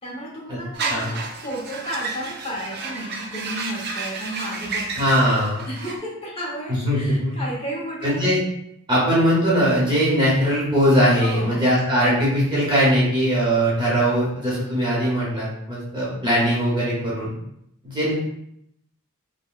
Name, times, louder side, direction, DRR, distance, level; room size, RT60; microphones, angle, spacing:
voice 1, 0.0-4.9 5.7-8.2 11.2-11.6, equal, 25° left, -5 dB, 0.9 m, -33 dB
sound 1, 0.7-6.0, right 4 dB, 45° right, 0.4 m, -31 dB
voice 2, 5.0-5.7 6.7-7.4 8.0-8.4 8.9-17.3 17.8-18.1, equal, 20° right, -7 dB, 0.8 m, -20 dB
3.8 x 2.1 x 2.3 m, 0.76 s
head